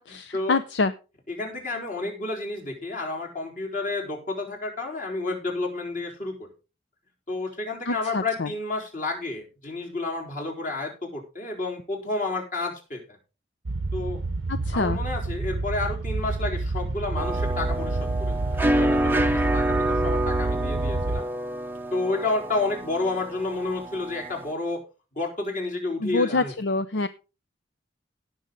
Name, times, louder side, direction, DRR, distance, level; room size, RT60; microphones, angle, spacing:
voice 1, 0.1-0.9 7.9-8.5 14.5-15.0 26.0-27.1, left 3 dB, 70° left, 12 dB, 0.6 m, -26 dB
voice 2, 1.3-6.5 7.3-13.2 13.9-14.2 14.7-21.3 21.9-24.8 25.2-26.5, left 2 dB, 45° left, -1 dB, 4.2 m, -30 dB
sound 1, 13.6-21.2, right 3 dB, 75° right, 0.7 m, -28 dB
sound 2, 17.2-24.5, right 1 dB, 10° right, 0.6 m, -28 dB
17.5 x 6.5 x 3.9 m, 0.31 s
head